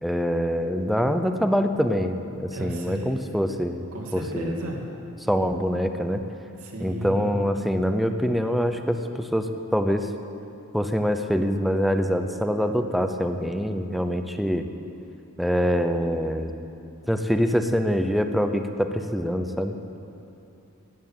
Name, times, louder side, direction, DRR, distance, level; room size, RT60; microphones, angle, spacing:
voice 1, 0.0-3.8 4.1-4.6 5.2-6.2 6.8-10.1 10.7-14.7 15.4-16.5 17.1-19.8, equal, ahead, 7 dB, 0.7 m, -24 dB
voice 2, 2.5-3.2 3.9-4.8 6.6-7.3, right 1 dB, 80° right, -1 dB, 2.6 m, -33 dB
13.5 x 9.2 x 9.0 m, 2.8 s
head